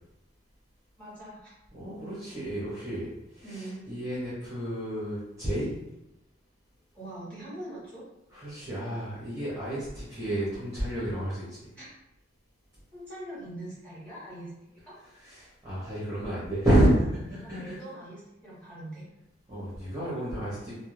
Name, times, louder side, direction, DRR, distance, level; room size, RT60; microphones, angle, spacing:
voice 1, 1.0-1.5 3.4-3.9 6.9-8.0 11.7-11.9 12.9-14.5 14.9-15.0 17.3-19.0, right 1 dB, 5° left, -9 dB, 1.0 m, -42 dB
voice 2, 1.7-3.1 3.3-5.7 8.3-11.6 15.2-17.8 19.5-20.8, right 1 dB, 15° right, -10 dB, 0.7 m, -30 dB
2.4 x 2.0 x 3.1 m, 0.90 s
head